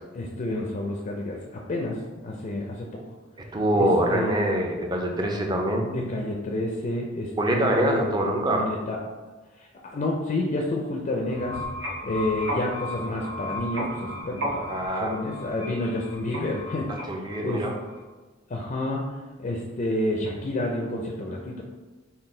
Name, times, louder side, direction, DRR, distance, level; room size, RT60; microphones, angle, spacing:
voice 1, 0.1-2.9 3.7-4.3 5.9-9.0 9.6-11.6 12.0-17.6 18.5-21.6, left 1 dB, 40° left, 0 dB, 0.4 m, -30 dB
voice 2, 3.5-5.9 7.4-8.7 14.7-15.1 17.1-17.7, right 1 dB, 20° right, 1 dB, 0.5 m, -24 dB
sound 1, 11.2-18.0, equal, 90° right, 1.0 m, -34 dB
3.8 x 2.3 x 3.7 m, 1.3 s
head